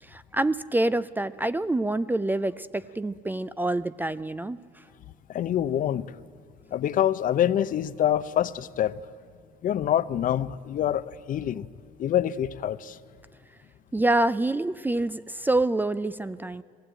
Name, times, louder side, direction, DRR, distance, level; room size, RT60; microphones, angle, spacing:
voice 1, 0.0-4.6 13.9-16.6, right 2 dB, 10° right, 15 dB, 0.4 m, -26 dB
voice 2, 5.3-6.1 6.7-9.0 9.6-11.7 12.0-13.0, left 10 dB, 55° left, 15 dB, 0.6 m, -26 dB
20.0 x 16.0 x 8.9 m, 2.4 s
cardioid pair, 110°, 17 cm